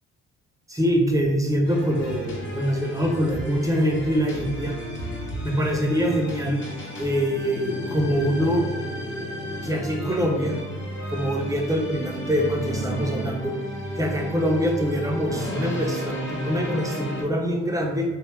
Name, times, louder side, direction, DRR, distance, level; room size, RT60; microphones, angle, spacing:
voice 1, 0.7-4.7 5.4-6.6 7.0-8.6 9.6-10.5 11.1-13.5 14.0-18.0, equal, 10° right, 0 dB, 0.6 m, -24 dB
sound 1, 1.6-17.2, equal, 40° left, 1.0 m, -32 dB
3.1 x 2.7 x 3.3 m, 1.2 s
cardioid pair, 90°, 30 cm